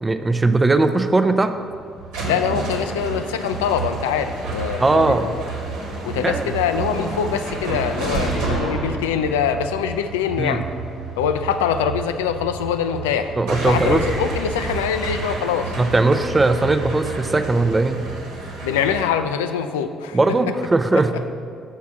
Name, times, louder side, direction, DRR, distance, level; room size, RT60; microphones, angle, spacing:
voice 1, 0.0-1.5 4.8-5.3 6.2-6.6 10.4-10.6 13.4-14.1 15.8-18.0 20.1-21.1, right 2 dB, 20° right, 9 dB, 0.5 m, -19 dB
sound 1, 1.5-19.0, right 3 dB, 65° right, 1.3 m, -29 dB
voice 2, 2.2-5.4 6.0-10.7 11.2-13.3 13.7-15.7 18.6-20.2, left 8 dB, 70° left, 9 dB, 0.3 m, -23 dB
7.3 x 4.6 x 5.9 m, 2.2 s
figure-of-eight pair, 45°, 0 cm